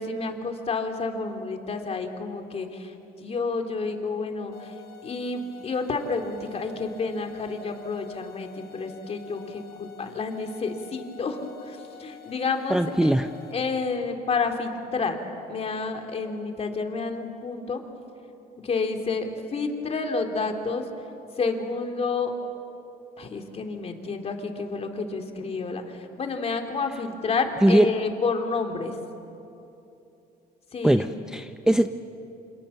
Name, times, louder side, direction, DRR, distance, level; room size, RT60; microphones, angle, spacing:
voice 1, 0.0-4.7 5.0-13.1 13.5-15.2 15.5-17.8 18.6-20.9 21.4-22.3 23.2-29.0 30.7-31.3, left 4 dB, 35° left, 5 dB, 3.0 m, -30 dB
sound 1, 4.5-13.5, left 11 dB, 75° left, 3.4 m, -48 dB
voice 2, 12.7-13.3 27.6-27.9 30.8-31.9, right 1 dB, 5° right, 8 dB, 0.6 m, -20 dB
27.5 x 27.0 x 7.0 m, 2.8 s
cardioid pair, 110°, 17 cm